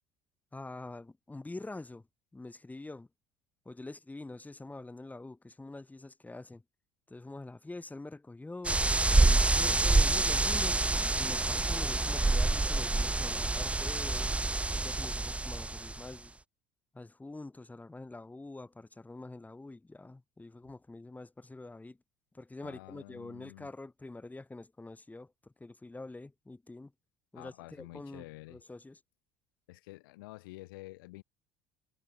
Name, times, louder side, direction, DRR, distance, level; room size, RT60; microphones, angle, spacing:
voice 1, 0.5-2.0 2.3-3.1 3.6-6.6 7.1-8.8 9.2-14.3 14.7-16.3 16.9-22.0 22.3-26.9 27.3-29.0, left 2 dB, 15° left, 6.2 m, -45 dB
sound 1, 8.6-16.1, right 2 dB, 10° right, 0.8 m, -27 dB
voice 2, 22.6-23.7 27.3-28.6 29.7-31.2, left 21 dB, 75° left, 4.2 m, -49 dB
hypercardioid pair, 70°, 12 cm